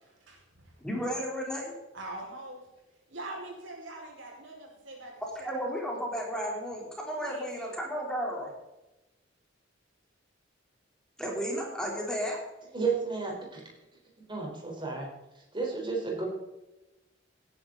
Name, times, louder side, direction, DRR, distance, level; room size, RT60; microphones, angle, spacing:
voice 1, 0.0-0.8 1.9-2.7 3.1-5.6 7.2-7.8, right 2 dB, 85° right, 5.1 m, -44 dB
voice 2, 0.8-1.7 5.4-8.5 11.2-12.4, equal, 5° left, 3.6 m, -33 dB
voice 3, 12.7-13.6 14.3-15.1 15.5-16.3, right 4 dB, 25° right, 4.3 m, -32 dB
17.0 x 10.5 x 4.0 m
head